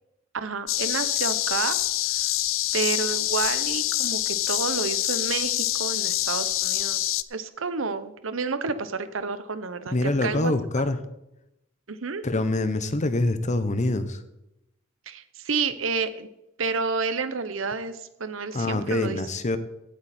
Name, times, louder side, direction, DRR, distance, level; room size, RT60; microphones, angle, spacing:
voice 1, 0.3-1.8 2.7-10.8 11.9-12.2 15.1-16.3 16.6-19.2, right 4 dB, 85° right, 12 dB, 0.9 m, -30 dB
sound 1, 0.7-7.2, left 15 dB, 85° left, 0.5 m, -26 dB
voice 2, 9.9-11.0 12.2-14.2 18.5-19.6, left 2 dB, 35° left, 11 dB, 1.0 m, -25 dB
17.0 x 8.3 x 4.4 m, 0.88 s
head